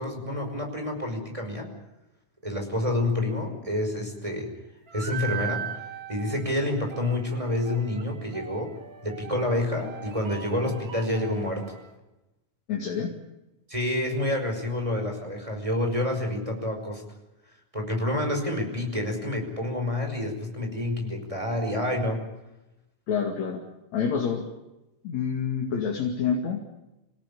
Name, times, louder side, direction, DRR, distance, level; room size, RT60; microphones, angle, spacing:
voice 1, 0.0-1.7 2.4-4.5 4.9-5.7 6.1-8.7 9.0-11.7 13.7-17.0 17.7-22.2, left 1 dB, 10° right, 3 dB, 5.2 m, -28 dB
sound 1, 4.9-11.9, right 8 dB, 40° right, 1.3 m, -40 dB
voice 2, 12.7-13.2 23.1-23.7 23.9-24.5 25.0-26.7, left 6 dB, 60° left, 1 dB, 3.6 m, -27 dB
27.5 x 17.5 x 8.6 m, 0.96 s
omnidirectional pair, 3.6 m